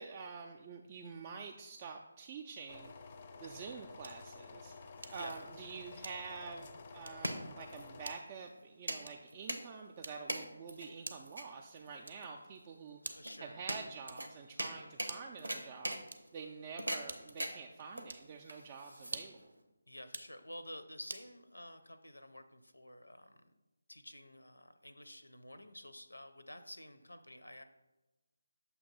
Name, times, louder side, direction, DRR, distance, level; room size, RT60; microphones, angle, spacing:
voice 1, 0.0-2.9 3.4-4.8 5.1-13.0 13.4-16.0 16.3-19.5, right 5 dB, 25° right, 2 dB, 0.3 m, -47 dB
sound 1, 2.7-8.2, left 4 dB, 30° left, 0.5 m, -52 dB
sound 2, 4.0-4.3 5.0-5.3 6.0-6.5 7.0-7.3 8.0-8.3 9.0-9.4 10.0-10.4 11.0-11.4 12.0-12.4 13.0-13.4 14.0-14.4 15.0-15.4 16.0-16.4 17.1-17.5 18.0-18.3 19.0-19.5 20.0-20.4 21.1-21.3, right 2 dB, 60° right, 0.7 m, -48 dB
sound 3, 4.7-19.6, right 1 dB, 85° right, 0.9 m, -43 dB
voice 2, 13.0-13.6 19.9-23.4 23.9-27.6, left 1 dB, 85° left, 10 dB, 0.5 m, -50 dB
7.0 x 2.9 x 5.4 m, 1.1 s
figure-of-eight pair, 155°, 0 cm